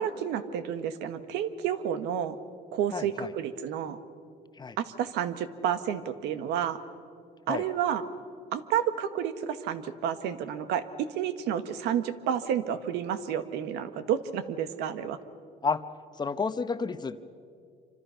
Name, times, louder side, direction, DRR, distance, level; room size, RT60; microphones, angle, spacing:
voice 1, 0.0-2.4 2.7-4.0 4.8-6.8 7.5-8.0 8.5-10.8 11.1-15.2, right 9 dB, 90° right, 11 dB, 1.3 m, -30 dB
voice 2, 2.9-3.3 4.6-4.8 7.5-7.7 15.6-15.8 16.2-17.3, left 5 dB, 25° left, 11 dB, 0.9 m, -31 dB
27.0 x 25.5 x 5.7 m, 2.4 s
cardioid pair, 110°, 17 cm